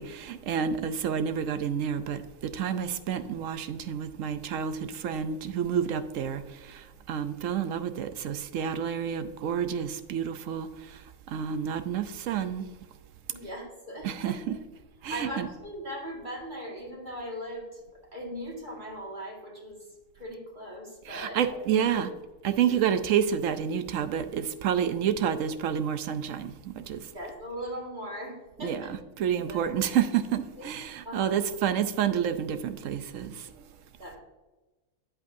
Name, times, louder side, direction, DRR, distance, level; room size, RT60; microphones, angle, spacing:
voice 1, 0.0-12.7 14.0-14.6 15.0-15.5 21.1-22.1 22.4-27.1 28.6-28.8 29.2-33.6, right 8 dB, 70° right, 0.9 m, -29 dB
voice 2, 13.3-14.6 15.1-17.8 18.1-19.9 20.1-21.6 21.9-22.1 22.4-22.6 27.1-28.9 29.5-29.8 30.6-30.7 31.0-31.5 34.0-34.2, equal, 35° right, 2.1 m, -39 dB
8.5 x 8.0 x 2.6 m
omnidirectional pair, 1.5 m